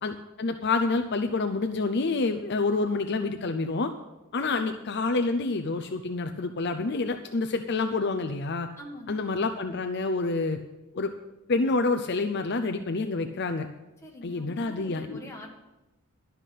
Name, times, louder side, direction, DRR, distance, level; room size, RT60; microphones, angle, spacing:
voice 1, 0.0-3.9 4.3-8.7 9.1-10.6 10.9-11.1 11.5-13.7 14.2-15.2, left 3 dB, 50° left, 7 dB, 0.6 m, -28 dB
voice 2, 4.4-4.7 8.8-9.2 14.0-15.5, left 1 dB, 15° left, -1 dB, 1.7 m, -44 dB
12.0 x 5.8 x 8.3 m, 1.0 s
head